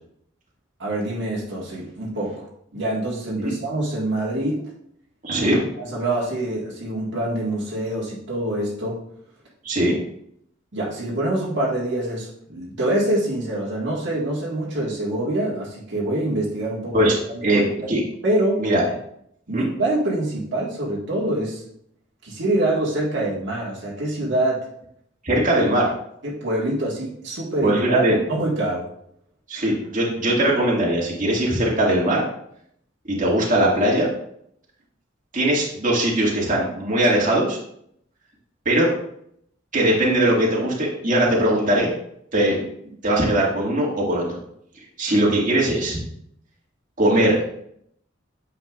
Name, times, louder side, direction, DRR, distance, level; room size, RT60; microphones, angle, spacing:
voice 1, 0.8-2.5 2.7-4.6 5.4-5.5 5.8-9.0 10.7-17.0 17.5-17.6 17.9-18.0 18.2-18.6 19.5-21.6 22.2-24.7 25.3-25.4 26.2-28.0 28.3-28.8, right 1 dB, 60° right, -5 dB, 1.8 m, -25 dB
voice 2, 5.2-5.6 9.6-10.0 16.9-17.2 17.4-18.0 18.6-18.8 19.5-19.7 25.2-25.9 27.6-28.2 29.5-32.2 33.1-34.1 35.3-37.6 38.7-38.9 39.7-41.9 42.3-42.7 43.0-44.3 45.0-46.0 47.0-47.4, right 1 dB, 40° right, -4 dB, 1.9 m, -20 dB
9.3 x 6.9 x 2.4 m, 0.70 s
head